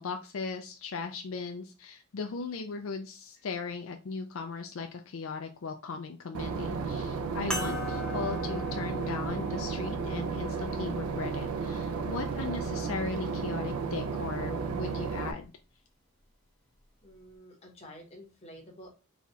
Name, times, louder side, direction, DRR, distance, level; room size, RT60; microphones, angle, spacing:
voice 1, 0.0-15.5, left 4 dB, 65° left, 5 dB, 0.5 m, -38 dB
Boat Water vehicle / Engine, 6.3-15.3, right 5 dB, 80° right, 0.5 m, -33 dB
sound 1, 7.5-12.3 13.1-13.2 15.3-15.4, left 2 dB, 5° left, 0.7 m, -41 dB
voice 2, 17.0-18.9, equal, 30° left, -1 dB, 1.2 m, -50 dB
4.2 x 2.3 x 4.2 m, 0.33 s
head